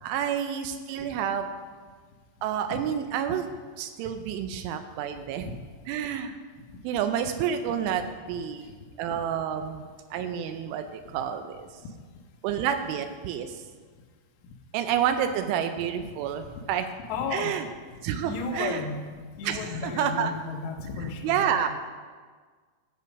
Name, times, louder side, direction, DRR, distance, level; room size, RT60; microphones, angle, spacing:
voice 1, 0.0-1.5 2.4-3.5 3.8-5.5 5.9-6.4 6.8-8.7 9.0-9.8 10.1-11.7 12.4-13.5 14.7-16.9 17.3-17.7 18.0-18.8 19.5-20.3 21.2-21.7, right 9 dB, 80° right, 8 dB, 2.8 m, -29 dB
voice 2, 17.1-17.6 18.3-21.6, left 4 dB, 90° left, 2 dB, 3.9 m, -34 dB
14.5 x 6.7 x 5.3 m, 1.5 s
omnidirectional pair, 6.0 m